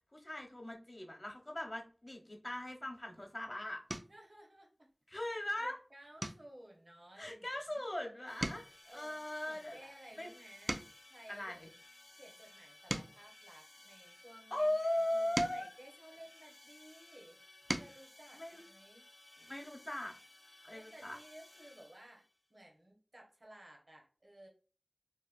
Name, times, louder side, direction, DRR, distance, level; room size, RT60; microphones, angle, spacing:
voice 1, 0.1-3.8 5.1-5.7 7.2-8.6 8.9-9.8 10.2-10.3 11.3-11.6 14.5-15.7 18.3-18.6 19.5-20.1 20.6-21.2, left 1 dB, 45° left, 3 dB, 0.8 m, -39 dB
sound 1, 3.0-3.3 3.9-4.3 4.8-5.1 5.4-5.6 6.2-8.0 8.3-11.2 11.8-14.3 14.9-16.8 17.3-18.1 19.4-19.5 19.8-20.0, right 1 dB, 45° right, 0.3 m, -44 dB
voice 2, 4.1-5.3 5.6-7.9 8.8-11.6 12.1-14.7 15.1-17.4 17.8-19.0 20.7-22.2 22.5-24.5, right 1 dB, 65° right, 0 dB, 0.9 m, -57 dB
sound 2, 8.3-22.4, left 2 dB, 65° left, 0.4 m, -59 dB
2.9 x 2.1 x 2.4 m, 0.37 s
wide cardioid pair, 45°, 0 cm